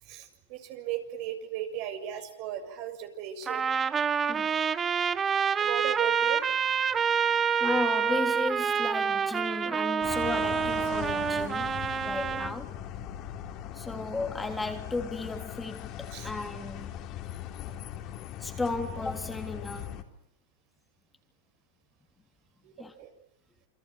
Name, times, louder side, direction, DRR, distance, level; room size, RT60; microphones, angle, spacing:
voice 1, 0.0-3.7 5.6-6.4 16.1-16.3 22.6-22.7 23.0-23.1, right 11 dB, 55° right, 6 dB, 6.9 m, -36 dB
Trumpet, 3.5-12.5, right 7 dB, 25° right, 1.2 m, -27 dB
voice 2, 4.3-4.6 7.6-11.7 12.0-12.7 13.7-17.0 18.4-20.0 22.8-23.0, left 3 dB, 10° left, 4 dB, 3.3 m, -34 dB
sound 1, 10.0-20.0, left 11 dB, 45° left, 3.9 m, -39 dB
29.0 x 25.0 x 8.0 m, 0.77 s
hypercardioid pair, 115°, 0 cm